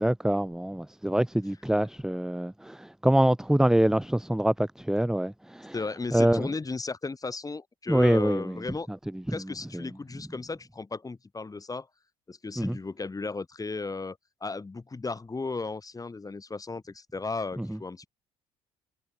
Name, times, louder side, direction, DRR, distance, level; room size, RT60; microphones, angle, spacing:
voice 1, 0.0-5.8 6.1-6.5 7.9-8.6 8.9-9.9 12.6-12.8 17.6-17.8, right 1 dB, 5° right, 1.4 m, -25 dB
voice 2, 5.7-8.9 9.3-11.9 12.3-18.1, left 3 dB, 20° left, 4.8 m, -35 dB
figure-of-eight pair, 50°, 17 cm